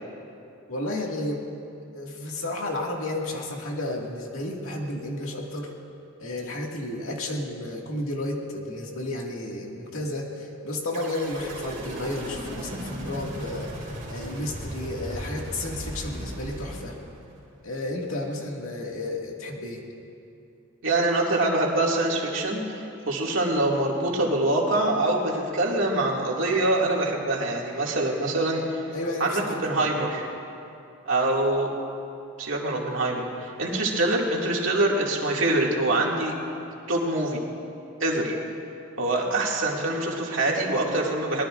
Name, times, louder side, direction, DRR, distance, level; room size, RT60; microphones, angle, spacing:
voice 1, 0.7-1.4 1.9-5.7 6.2-17.0 17.6-19.8 28.9-29.9, left 1 dB, 80° left, -1 dB, 2.1 m, -32 dB
sound 1, 10.9-17.4, right 1 dB, 35° right, 4.0 m, -36 dB
voice 2, 20.8-28.8 29.2-30.3 31.1-31.7 32.4-36.3 36.9-37.4 38.0-38.3 39.0-41.5, right 2 dB, 70° right, -2 dB, 2.3 m, -25 dB
23.0 x 19.5 x 2.5 m, 2.7 s
head